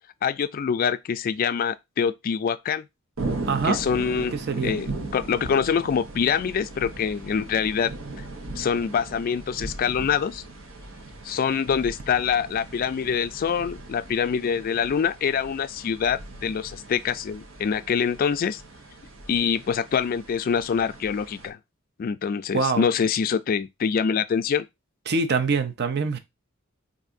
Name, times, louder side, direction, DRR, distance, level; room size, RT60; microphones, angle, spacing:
voice 1, 0.2-2.8 3.6-4.3 4.6-7.9 8.6-10.4 11.2-18.6 19.3-21.6 22.0-24.7, left 7 dB, 45° left, 0.3 m, -25 dB
sound 1, 3.2-21.5, right 2 dB, 85° right, 1.0 m, -38 dB
voice 2, 3.5-3.8 4.3-4.7 22.5-22.9 25.1-26.2, right 4 dB, 55° right, 0.6 m, -24 dB
4.6 x 2.6 x 2.5 m
head